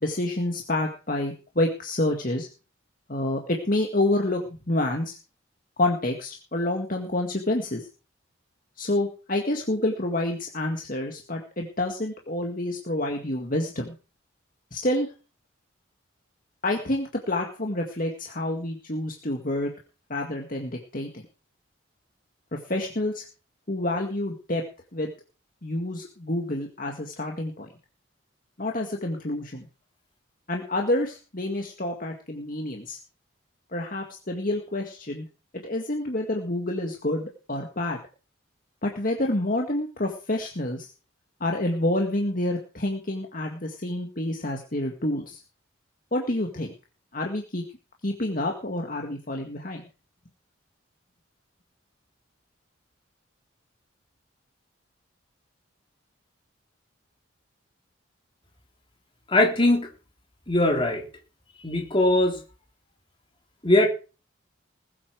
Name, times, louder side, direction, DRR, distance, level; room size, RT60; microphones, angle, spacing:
voice 1, 0.0-2.5 3.1-4.4 4.7-5.2 5.8-7.9 8.8-13.9 14.7-15.1 16.6-19.7 20.1-21.1 22.5-23.3 23.7-24.6 24.9-25.1 25.6-27.7 28.6-29.7 30.5-33.0 33.7-35.3 35.6-38.0 38.8-40.9 41.4-45.4 46.1-46.7 47.1-47.6 48.0-49.8, left 1 dB, 45° left, 1 dB, 1.9 m, -28 dB
voice 2, 59.3-59.9 60.5-61.0 61.6-62.4 63.6-63.9, left 1 dB, 25° left, 0 dB, 3.7 m, -20 dB
20.5 x 8.6 x 4.8 m, 0.35 s
head